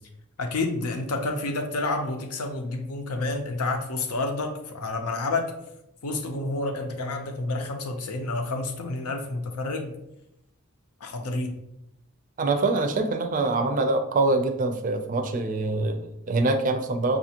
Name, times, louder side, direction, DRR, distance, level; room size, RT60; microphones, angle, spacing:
voice 1, 0.4-5.5 6.0-9.9 11.0-11.6, left 2 dB, 80° left, 5 dB, 0.6 m, -29 dB
voice 2, 12.4-17.2, right 2 dB, 35° right, 6 dB, 0.4 m, -24 dB
5.3 x 2.5 x 2.8 m, 0.85 s
head